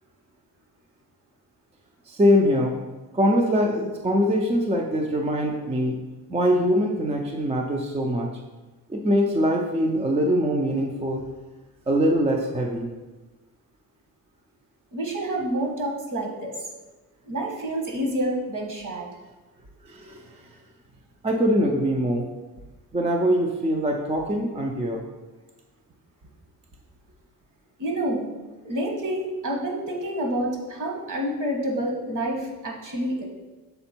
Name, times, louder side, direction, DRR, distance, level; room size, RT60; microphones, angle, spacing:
voice 1, 2.1-2.8 3.1-6.0 6.3-8.3 8.9-11.2 11.9-12.9 19.8-20.5 21.2-22.3 22.9-25.0, equal, 15° right, 1 dB, 0.4 m, -23 dB
voice 2, 14.9-16.5 17.3-19.1 27.8-28.2 28.6-33.2, right 1 dB, 50° right, 0 dB, 1.5 m, -28 dB
6.8 x 4.2 x 4.3 m, 1.2 s
cardioid pair, 155°, 39 cm